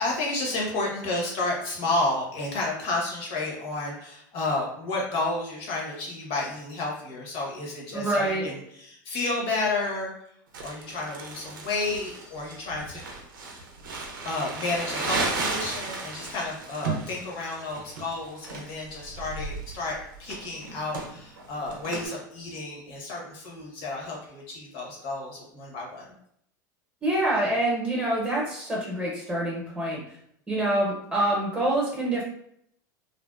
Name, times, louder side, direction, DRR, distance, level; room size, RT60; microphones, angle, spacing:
voice 1, 0.0-13.0 14.2-26.1, left 2 dB, 55° left, -2 dB, 1.0 m, -31 dB
voice 2, 7.9-8.4 27.0-30.2 30.5-32.2, right 1 dB, 15° right, -5 dB, 0.9 m, -26 dB
Crumpling crinkling, 10.5-22.1, right 3 dB, 80° right, 0.5 m, -35 dB
2.6 x 2.1 x 2.3 m, 0.70 s
hypercardioid pair, 90°, 11 cm